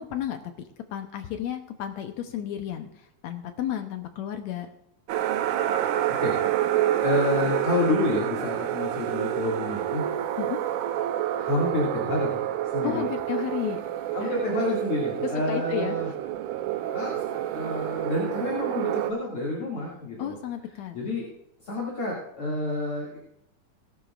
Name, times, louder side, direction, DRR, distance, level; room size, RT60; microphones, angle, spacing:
voice 1, 0.0-4.7 10.4-10.6 12.8-13.8 14.2-14.4 15.2-16.0 20.2-21.0, left 10 dB, 75° left, 7 dB, 1.8 m, -33 dB
sound 1, 5.1-19.1, right 12 dB, 80° right, 2.2 m, -28 dB
voice 2, 6.2-6.5 7.0-10.0 11.4-12.4 12.6-13.0 14.1-16.1 16.9-20.3 20.9-21.2 21.6-23.2, left 2 dB, 45° left, -4 dB, 3.1 m, -29 dB
18.5 x 12.0 x 2.5 m, 0.81 s
omnidirectional pair, 3.7 m